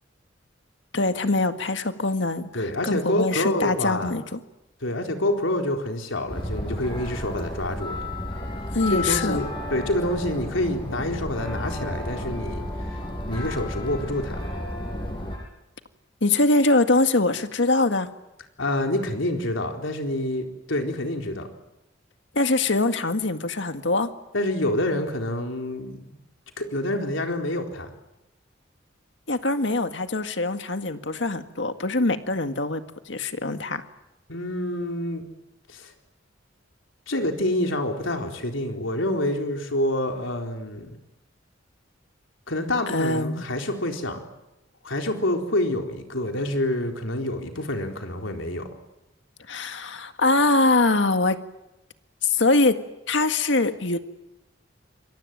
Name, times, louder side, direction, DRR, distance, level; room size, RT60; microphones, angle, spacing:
voice 1, 0.9-4.4 8.7-9.4 16.2-18.1 22.4-24.1 29.3-33.8 42.9-43.4 49.5-51.4 52.2-52.8 53.1-54.0, left 2 dB, 70° left, 8 dB, 1.9 m, -23 dB
voice 2, 2.5-4.1 4.8-8.0 8.9-12.6 13.3-14.4 18.6-21.5 24.3-26.2 26.6-27.9 34.3-35.2 35.7-35.9 37.1-41.0 42.5-44.2 44.8-48.7, left 1 dB, 90° left, 3 dB, 4.1 m, -27 dB
sound 1, 6.3-15.4, left 1 dB, 25° left, 7.2 m, -32 dB
27.5 x 23.0 x 9.2 m, 0.95 s
head